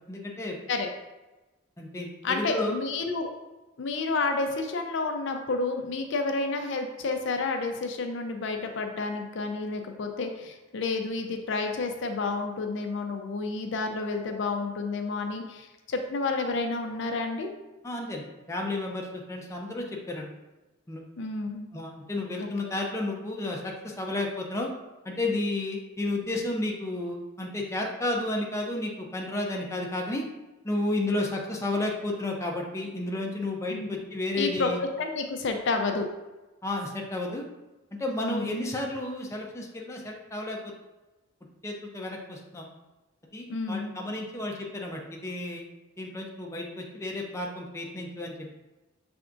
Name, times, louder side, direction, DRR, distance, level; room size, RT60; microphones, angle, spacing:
voice 1, 0.1-0.6 1.8-2.8 17.8-20.3 20.9-21.0 21.7-24.7 25.0-30.2 30.6-34.8 36.6-37.4 38.0-40.7 41.6-42.7 43.3-45.6 46.0-48.3, left 2 dB, 15° left, -1 dB, 0.5 m, -32 dB
voice 2, 2.2-3.3 3.8-17.5 21.2-21.7 22.4-22.5 33.7-33.9 34.4-36.1 38.2-38.6 43.5-43.9, left 3 dB, 65° left, 4 dB, 0.5 m, -30 dB
5.9 x 3.4 x 2.5 m, 1.1 s
head